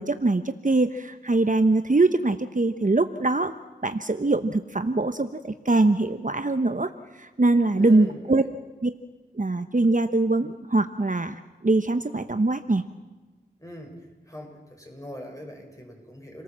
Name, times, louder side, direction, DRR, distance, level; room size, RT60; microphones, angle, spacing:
voice 1, 0.0-3.5 3.8-6.9 7.2-8.4 8.8-8.9 9.3-12.8, right 2 dB, 45° right, 9 dB, 1.0 m, -23 dB
voice 2, 7.8-8.4 13.6-16.4, equal, 15° left, 1 dB, 6.4 m, -41 dB
28.5 x 18.5 x 7.5 m, 1.2 s
wide cardioid pair, 50°, 19 cm